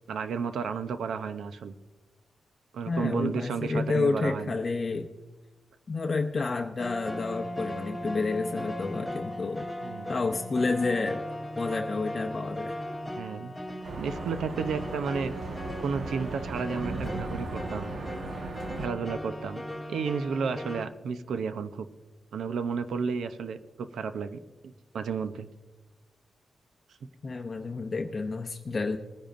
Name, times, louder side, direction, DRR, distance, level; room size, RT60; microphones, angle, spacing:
voice 1, 0.1-1.7 2.7-4.5 9.8-10.1 13.1-13.6 14.0-15.3 15.8-17.9 18.8-21.9 22.3-25.5, right 5 dB, 80° right, 10 dB, 0.6 m, -32 dB
voice 2, 2.9-5.1 5.9-9.7 10.1-11.2 11.6-12.7 27.2-29.0, left 3 dB, 35° left, 3 dB, 0.6 m, -30 dB
sound 1, 6.8-20.9, equal, 5° left, 0.9 m, -38 dB
sound 2, 13.8-18.9, right 2 dB, 60° right, 1.3 m, -37 dB
21.0 x 10.5 x 2.5 m, 1.2 s
wide cardioid pair, 135°, 0 cm